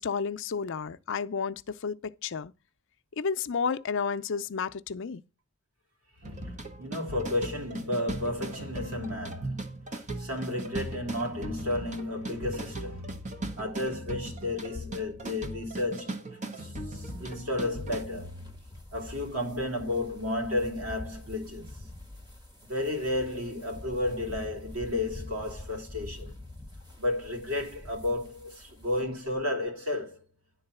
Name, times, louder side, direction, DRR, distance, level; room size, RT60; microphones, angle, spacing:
voice 1, 0.0-2.0 2.2-2.5 3.2-5.2, left 5 dB, 60° left, 0.5 m, -31 dB
sound 1, 6.2-18.0, right 1 dB, 35° right, 1.1 m, -38 dB
voice 2, 6.4-13.2 13.6-16.3 16.5-18.5 18.9-21.9 22.7-26.3 27.0-30.2, left 1 dB, 90° right, 3.0 m, -33 dB
sound 2, 17.0-29.0, left 1 dB, 20° right, 1.8 m, -46 dB
10.5 x 3.9 x 6.8 m
head